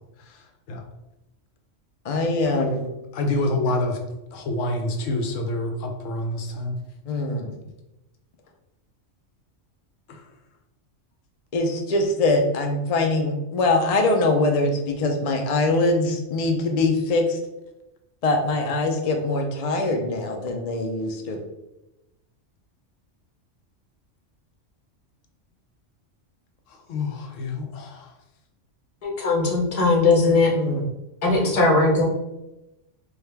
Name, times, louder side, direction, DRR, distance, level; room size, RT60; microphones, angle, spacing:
voice 1, 0.2-0.8 3.1-4.0 4.3-6.8 10.1-10.2 26.7-28.1, left 2 dB, 85° left, 4 dB, 1.0 m, -27 dB
voice 2, 2.1-2.9 7.1-7.5 11.5-17.4 18.2-21.4 30.5-30.8, left 2 dB, 55° left, 3 dB, 0.4 m, -23 dB
voice 3, 29.0-30.5 31.2-32.0, left 3 dB, 35° left, 0 dB, 0.8 m, -19 dB
4.6 x 2.3 x 3.3 m, 0.95 s
omnidirectional pair, 1.3 m